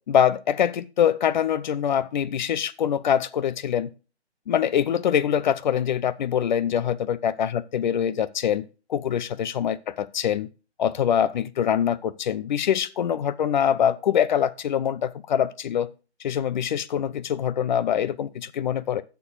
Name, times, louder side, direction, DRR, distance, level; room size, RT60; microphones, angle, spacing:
voice 1, 0.1-3.9 4.5-8.6 8.9-10.5 10.8-15.9 16.2-19.0, left 9 dB, 40° left, 0.7 m, -24 dB
9.6 x 6.9 x 4.8 m
figure-of-eight pair, 130°, 34 cm